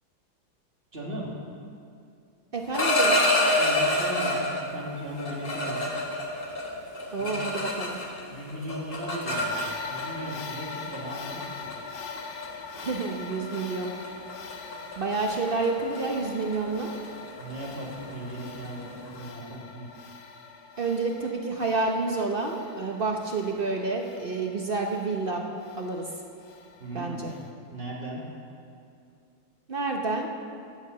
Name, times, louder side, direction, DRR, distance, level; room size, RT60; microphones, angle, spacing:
voice 1, 0.9-1.3 3.5-5.9 7.2-7.4 8.3-11.7 17.4-19.9 26.8-27.2 27.7-28.2, right 1 dB, 30° right, -4 dB, 2.3 m, -37 dB
sound 1, 2.5-4.7 5.2-8.2 8.5-10.0 10.9-11.1 11.4-11.7 12.2-12.4 12.8-13.0 13.3-13.6 13.8-19.2, left 1 dB, 30° left, 1.4 m, -27 dB
voice 2, 2.5-3.2 7.1-8.0 12.8-13.9 15.0-16.9 20.8-25.4 25.8-26.1 26.9-27.3 29.7-30.3, right 3 dB, 50° right, 1 dB, 0.6 m, -29 dB
sound 2, 9.3-27.5, left 5 dB, 65° left, 1.4 m, -42 dB
11.5 x 8.8 x 7.4 m, 2.4 s
omnidirectional pair, 2.1 m